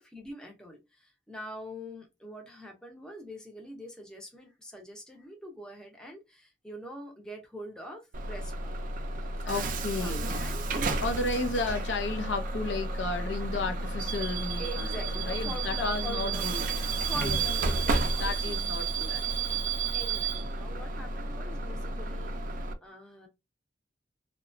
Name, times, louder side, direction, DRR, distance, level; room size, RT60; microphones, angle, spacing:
voice 1, 0.0-8.7 9.4-11.1 14.6-16.6 17.1-18.7 19.9-23.3, equal, 5° left, 0.6 m, -44 dB
Bus / Alarm, 8.1-22.7, right 3 dB, 45° right, 0.4 m, -31 dB
voice 2, 9.4-10.3 11.0-16.6 17.2-17.4 18.2-19.7, left 3 dB, 80° left, 0.5 m, -33 dB
2.8 x 2.2 x 2.5 m
head